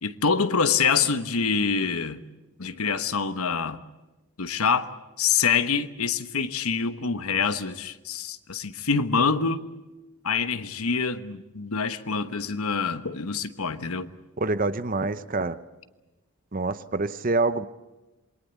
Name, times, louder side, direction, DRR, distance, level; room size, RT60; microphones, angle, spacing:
voice 1, 0.0-2.2 2.6-3.8 4.4-4.9 5.2-9.6 10.2-14.1, left 5 dB, 80° left, 1.2 m, -25 dB
voice 2, 14.4-15.6 16.5-17.7, right 3 dB, 40° right, 0.8 m, -26 dB
27.0 x 22.5 x 8.2 m
head